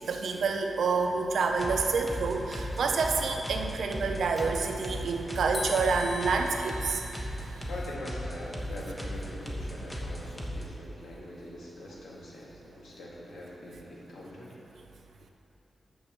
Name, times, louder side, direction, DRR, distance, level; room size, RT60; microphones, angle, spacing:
voice 1, 0.0-7.0, right 4 dB, 85° right, 4 dB, 0.7 m, -28 dB
sound 1, 1.5-10.6, equal, 15° left, 1.2 m, -37 dB
sound 2, 5.5-8.6, left 3 dB, 50° left, 0.7 m, -43 dB
voice 2, 7.7-14.5, left 1 dB, 85° left, -5 dB, 1.9 m, -43 dB
6.8 x 6.2 x 6.9 m, 2.9 s
wide cardioid pair, 95°, 0 cm